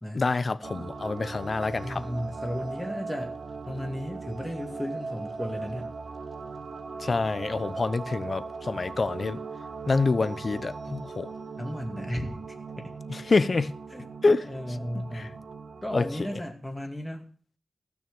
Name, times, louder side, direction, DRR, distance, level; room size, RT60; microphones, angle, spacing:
voice 1, 0.1-2.0 7.0-9.4 9.9-11.3 13.1-13.7 14.2-14.5 14.9-15.3 15.9-16.1, left 3 dB, 45° left, 0.7 m, -26 dB
sound 1, 0.6-16.4, right 4 dB, 55° right, 1.2 m, -39 dB
voice 2, 1.8-3.3 3.7-5.9 11.6-12.3 12.8-12.9 13.9-14.0 14.4-15.4 15.8-17.3, equal, 5° left, 2.4 m, -34 dB
15.5 x 6.3 x 6.9 m
wide cardioid pair, 95°, 0 cm